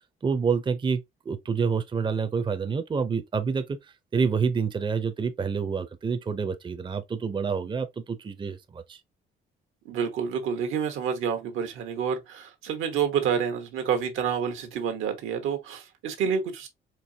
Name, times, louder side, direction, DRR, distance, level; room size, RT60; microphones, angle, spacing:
voice 1, 0.2-3.8 4.1-9.0, right 5 dB, 25° right, 0.5 m, -28 dB
voice 2, 9.8-16.7, right 7 dB, 85° right, 1.1 m, -28 dB
4.5 x 2.7 x 2.7 m
cardioid pair, 90°, 20 cm